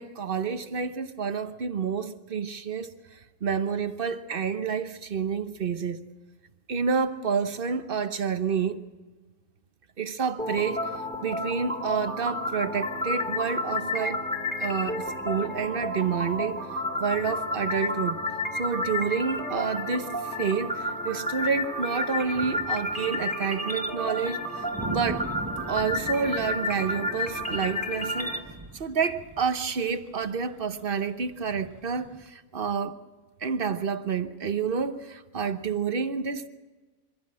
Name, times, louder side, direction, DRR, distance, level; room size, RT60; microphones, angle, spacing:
voice 1, 0.0-6.0 6.7-8.9 10.0-14.2 14.6-16.7 17.0-18.2 18.5-24.4 24.9-25.3 25.7-28.3 28.7-33.0 33.4-36.5, right 6 dB, 50° right, 1.1 m, -29 dB
sound 1, 10.4-28.4, left 1 dB, 5° left, 2.2 m, -31 dB
sound 2, 18.8-19.0 19.2-19.3 20.2-20.3 21.6-32.3, right 2 dB, 15° right, 0.9 m, -41 dB
24.0 x 15.5 x 7.5 m
omnidirectional pair, 1.3 m